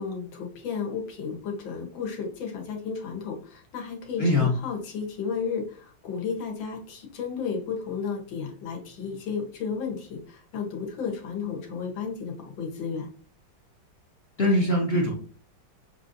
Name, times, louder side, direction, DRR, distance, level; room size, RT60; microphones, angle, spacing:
voice 1, 0.0-13.1, left 6 dB, 85° left, 1 dB, 1.8 m, -33 dB
voice 2, 4.2-4.5 14.4-15.1, left 1 dB, 55° left, -2 dB, 0.7 m, -22 dB
6.2 x 2.6 x 2.6 m, 0.43 s
omnidirectional pair, 2.0 m